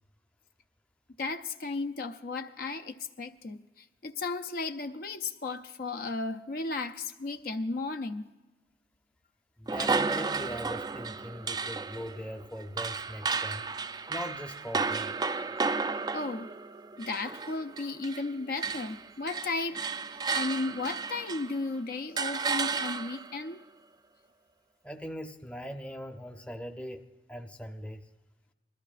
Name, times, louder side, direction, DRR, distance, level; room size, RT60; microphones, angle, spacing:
voice 1, 1.2-8.3 15.6-15.7 16.1-16.5 17.0-20.0 20.3-23.6, left 3 dB, 55° left, 0.5 m, -35 dB
voice 2, 9.6-13.7 14.1-15.1 24.8-28.0, equal, 5° left, 0.6 m, -41 dB
sound 1, 9.7-18.3 18.6-21.6 22.2-23.4, right 4 dB, 20° right, 0.3 m, -33 dB
21.0 x 13.5 x 2.5 m
head